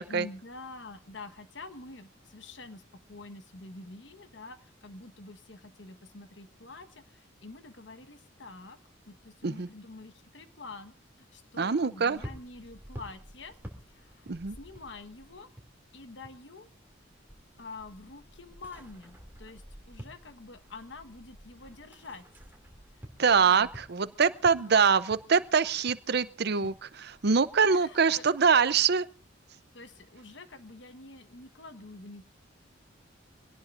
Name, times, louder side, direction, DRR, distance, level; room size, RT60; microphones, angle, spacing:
voice 1, 0.1-2.8 3.1-8.8 9.1-13.6 13.9-14.3 14.6-15.5 15.9-16.7 17.6-22.3 22.9-23.7 24.6-25.0 26.5-26.8 27.7-28.3 29.7-32.3, left 3 dB, 65° left, 9 dB, 1.3 m, -47 dB
voice 2, 11.6-12.2 14.3-14.6 23.2-29.1, right 5 dB, 55° right, 15 dB, 0.6 m, -24 dB
sound 1, 12.1-16.5 16.7-27.5, equal, 10° right, 2.7 m, -50 dB
24.5 x 17.5 x 2.6 m, 0.38 s
head